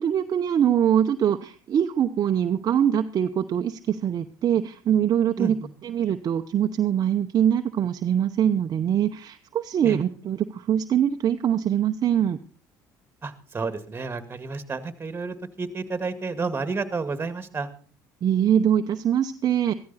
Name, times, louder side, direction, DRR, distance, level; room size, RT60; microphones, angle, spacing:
voice 1, 0.0-5.6 5.8-12.4 18.2-19.7, right 9 dB, 45° right, 6 dB, 0.8 m, -23 dB
voice 2, 5.4-5.7 9.8-10.0 13.2-17.7, right 4 dB, 25° right, 11 dB, 2.0 m, -31 dB
14.0 x 14.0 x 4.2 m, 0.38 s
supercardioid pair, 75°, 9 cm